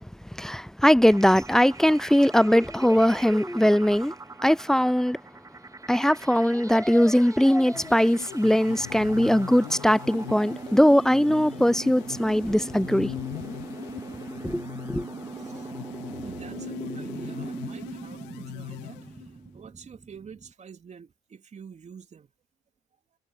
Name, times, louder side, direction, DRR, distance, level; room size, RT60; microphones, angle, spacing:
voice 1, 0.4-4.1 4.4-5.2 5.9-13.1 14.4-14.6 14.9-15.1, equal, ahead, 0.5 m, -21 dB
sound 1, 1.1-20.5, right 3 dB, 15° right, 0.9 m, -41 dB
sound 2, 7.7-19.5, left 24 dB, 65° left, 2.1 m, -41 dB
voice 2, 15.3-15.8 16.0-22.3, right 6 dB, 35° right, 3.4 m, -47 dB
figure-of-eight pair, 55°, 20 cm